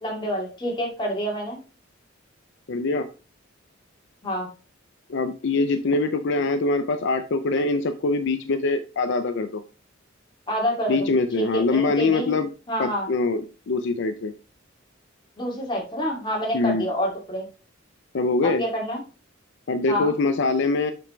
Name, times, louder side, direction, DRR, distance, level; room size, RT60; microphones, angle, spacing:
voice 1, 0.0-1.6 4.2-4.5 10.5-12.4 12.7-13.1 15.4-17.4 18.6-19.0 19.9-20.1, equal, 25° left, -2 dB, 2.3 m, -27 dB
voice 2, 2.7-3.1 5.1-9.6 10.9-12.5 12.8-14.3 16.5-16.8 18.1-18.6 19.7-20.9, left 3 dB, 65° left, 9 dB, 0.5 m, -23 dB
7.7 x 5.0 x 3.1 m, 0.35 s
head